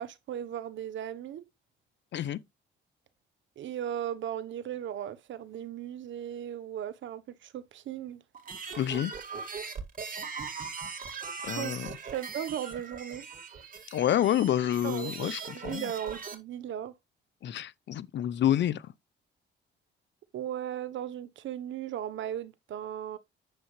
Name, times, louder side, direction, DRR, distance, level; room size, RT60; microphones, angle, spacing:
voice 1, 0.0-1.5 3.6-8.2 11.5-13.3 14.8-16.9 20.3-23.2, right 10 dB, 70° right, 1.1 m, -37 dB
sound 1, 8.3-16.4, right 5 dB, 45° right, 2.4 m, -40 dB
voice 2, 8.8-9.1 11.4-11.9 13.9-15.8 17.4-18.8, left 11 dB, 65° left, 0.8 m, -28 dB
9.3 x 7.1 x 3.3 m
cardioid pair, 90°, 20 cm